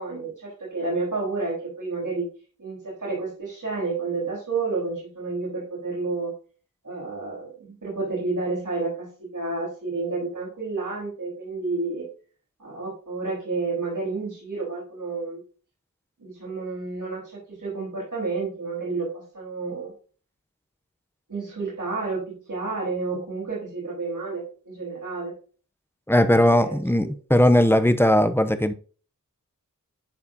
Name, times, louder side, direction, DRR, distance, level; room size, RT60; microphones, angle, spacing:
voice 1, 0.0-2.3 2.6-6.3 6.8-12.1 12.6-15.4 16.2-19.9 21.3-25.3 26.4-27.1, right 3 dB, 65° right, 4.1 m, -30 dB
voice 2, 26.1-28.7, left 1 dB, 5° left, 0.6 m, -18 dB
11.0 x 4.7 x 2.7 m
wide cardioid pair, 65°, 34 cm